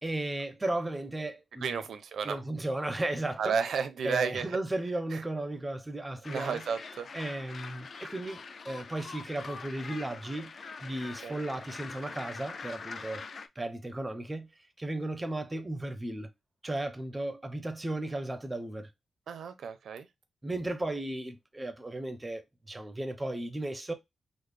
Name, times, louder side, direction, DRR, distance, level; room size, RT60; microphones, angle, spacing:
voice 1, 0.0-1.8 2.2-3.6 4.0-6.6 7.1-13.2 13.6-14.5 14.8-16.3 16.6-18.9 20.4-23.9, right 1 dB, 15° right, 0.5 m, -35 dB
voice 2, 1.6-2.4 3.4-4.6 5.1-5.2 6.3-7.1 11.2-11.4 19.3-20.1, right 6 dB, 75° right, 0.5 m, -32 dB
sound 1, 6.2-13.5, left 4 dB, 50° left, 0.3 m, -44 dB
3.7 x 2.0 x 3.2 m
wide cardioid pair, 140°, 0 cm